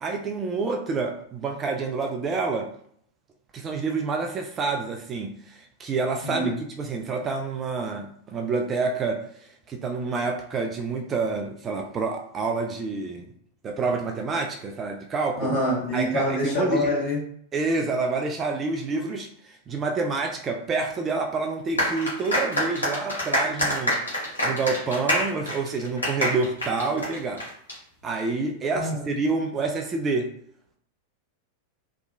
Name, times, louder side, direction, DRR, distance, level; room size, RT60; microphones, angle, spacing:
voice 1, 0.0-2.7 3.5-13.3 13.6-15.5 15.9-16.9 17.5-27.4 28.0-30.3, right 4 dB, 25° right, 3 dB, 0.3 m, -28 dB
voice 2, 6.2-6.5 15.4-17.2 28.7-29.0, left 1 dB, 40° left, -5 dB, 1.3 m, -25 dB
sound 1, 21.8-27.7, equal, 75° left, 1.0 m, -26 dB
2.8 x 2.2 x 2.4 m, 0.64 s
figure-of-eight pair, 90°, 0 cm